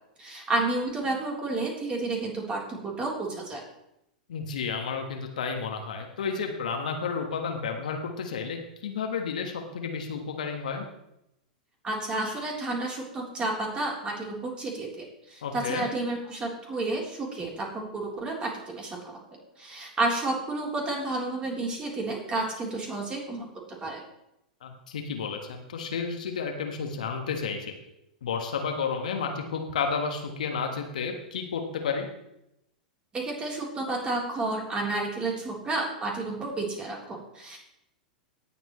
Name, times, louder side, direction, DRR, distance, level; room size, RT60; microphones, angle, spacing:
voice 1, 0.2-3.6 11.8-19.2 19.6-23.5 23.8-24.0 33.1-37.6, right 2 dB, 20° right, -1 dB, 3.6 m, -31 dB
voice 2, 4.3-10.9 15.4-15.9 24.6-27.7 28.2-32.1, left 5 dB, 70° left, 4 dB, 1.5 m, -31 dB
18.0 x 7.8 x 3.2 m, 0.83 s
figure-of-eight pair, 95°, 4 cm